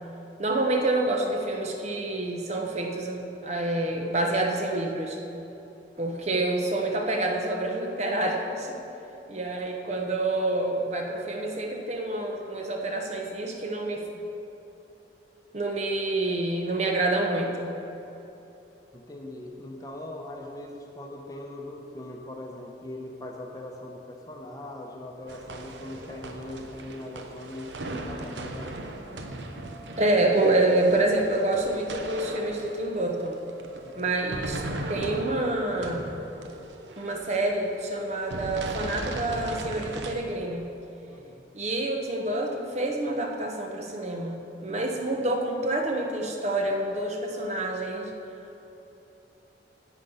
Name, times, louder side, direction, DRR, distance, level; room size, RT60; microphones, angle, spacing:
voice 1, 0.4-5.2 6.0-8.8 9.3-14.0 15.5-17.7 30.0-33.4 33.9-34.6 34.9-36.2 37.0-40.6 41.5-48.1, right 2 dB, 40° right, 2 dB, 0.9 m, -27 dB
voice 2, 18.9-29.0 33.8-34.2 41.1-41.5, left 1 dB, 20° left, 1 dB, 0.9 m, -41 dB
sound 1, 25.3-40.1, right 2 dB, 80° right, 0.9 m, -38 dB
10.5 x 8.0 x 5.6 m, 3.0 s
head